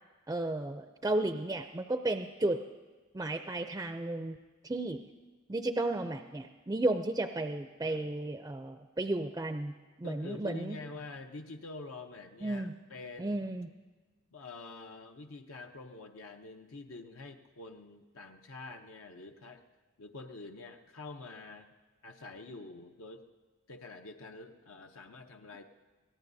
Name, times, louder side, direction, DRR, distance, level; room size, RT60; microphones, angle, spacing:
voice 1, 0.3-2.6 3.1-4.4 4.6-5.0 5.5-9.7 10.0-10.8 12.4-12.7 13.2-13.7, right 2 dB, 15° right, 7 dB, 0.4 m, -33 dB
voice 2, 7.8-8.2 10.0-13.4 14.3-19.6 20.0-21.7 22.0-23.2 23.7-25.6, left 3 dB, 80° left, 4 dB, 0.8 m, -46 dB
23.5 x 17.5 x 2.7 m, 1.3 s
head